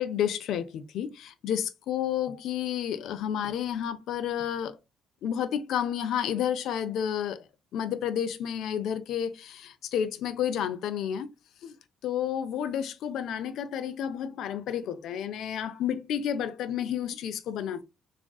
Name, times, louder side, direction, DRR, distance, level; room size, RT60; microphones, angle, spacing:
voice 1, 0.0-4.8 5.2-7.4 7.7-11.3 11.6-11.7 12.0-17.8, left 9 dB, 80° left, 0.4 m, -31 dB
3.5 x 2.4 x 2.3 m
cardioid pair, 90°, 0 cm